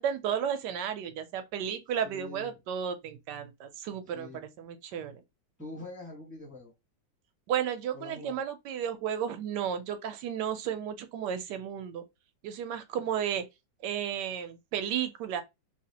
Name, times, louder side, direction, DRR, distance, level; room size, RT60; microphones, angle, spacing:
voice 1, 0.0-5.2 7.5-12.0 12.4-13.4 13.8-15.4, right 8 dB, 75° right, 1.1 m, -33 dB
voice 2, 2.0-2.6 4.0-4.4 5.6-6.7 7.9-8.4, left 2 dB, 5° right, 1.0 m, -44 dB
3.2 x 2.7 x 2.8 m
omnidirectional pair, 2.0 m